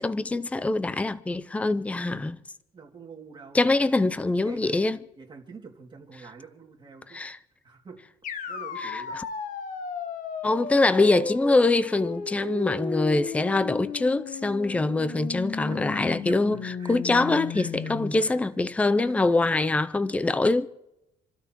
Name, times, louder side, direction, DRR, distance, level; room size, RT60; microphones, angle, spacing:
voice 1, 0.0-2.4 3.5-5.0 7.1-7.4 8.8-9.2 10.4-16.6 16.9-20.7, left 2 dB, 10° left, 0.4 m, -24 dB
voice 2, 2.7-3.9 4.4-4.8 5.2-7.2 7.6-8.0 8.5-9.2 15.7-18.4 19.0-19.1, right 5 dB, 30° right, 2.4 m, -45 dB
sound 1, 8.2-18.1, left 5 dB, 60° left, 1.3 m, -34 dB
28.5 x 13.0 x 3.0 m
cardioid pair, 130°, 15 cm